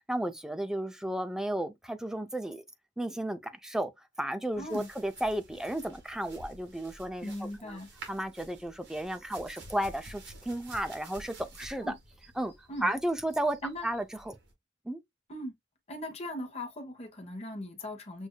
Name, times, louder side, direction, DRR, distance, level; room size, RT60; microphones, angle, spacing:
voice 1, 0.1-2.6 3.0-3.9 4.2-7.3 7.6-7.8 8.1-11.9 12.4-12.5 12.8-13.6 13.8-14.4 14.9-15.0, right 1 dB, 5° right, 0.4 m, -33 dB
sound 1, 4.5-14.5, right 2 dB, 70° right, 1.8 m, -51 dB
voice 2, 4.6-4.9 7.2-7.9 11.8-12.0 12.7-12.9 13.6-13.9 15.3-15.5 15.9-18.3, left 1 dB, 35° left, 1.0 m, -39 dB
6.4 x 2.6 x 2.2 m
head